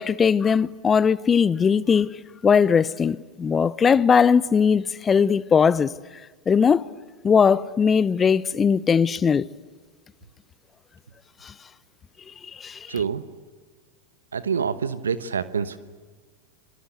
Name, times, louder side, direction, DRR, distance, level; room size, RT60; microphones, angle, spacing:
voice 1, 0.0-2.1 2.4-5.9 6.5-6.8 7.2-9.4 11.4-11.5 12.6-13.0, left 6 dB, 25° left, 0.7 m, -19 dB
voice 2, 12.9-13.2 14.3-15.8, right 6 dB, 90° right, 1.0 m, -26 dB
27.0 x 23.0 x 8.0 m
hypercardioid pair, 90°, 0 cm